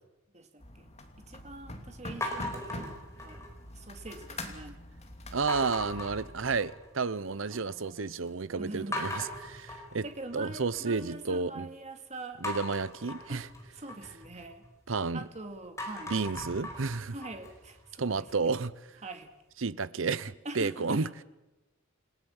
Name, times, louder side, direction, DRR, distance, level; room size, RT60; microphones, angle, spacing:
voice 1, 0.3-0.9 1.3-3.4 3.7-4.8 7.4-8.1 8.6-9.1 9.6-12.4 13.3-14.6 15.1-16.1 17.1-18.6 19.0-19.3 20.4-21.1, right 2 dB, 35° right, 2.3 m, -44 dB
sound 1, 0.6-6.6, left 1 dB, 35° left, 2.9 m, -44 dB
sound 2, 2.2-3.7 4.1-4.6 5.5-7.0 7.3-7.9 8.3-8.4 8.9-11.0 12.4-15.2 15.6-18.5, left 1 dB, 15° left, 4.8 m, -40 dB
voice 2, 5.3-10.0 10.3-11.7 12.4-13.5 14.9-15.3 16.1-17.1 18.0-18.7 19.6-21.2, right 4 dB, 70° right, 0.8 m, -31 dB
28.5 x 17.5 x 7.3 m
head